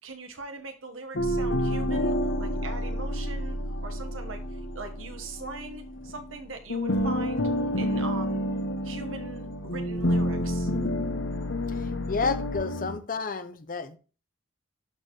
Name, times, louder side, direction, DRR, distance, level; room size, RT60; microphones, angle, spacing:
voice 1, 0.0-7.5 7.8-8.5 8.8-10.7, right 3 dB, 85° right, 5 dB, 1.4 m, -41 dB
sound 1, 1.1-6.4 6.7-13.0, equal, 70° left, 0.9 m, -29 dB
voice 2, 11.7-14.0, left 4 dB, 45° left, 11 dB, 0.7 m, -31 dB
11.5 x 4.4 x 3.2 m, 0.36 s
head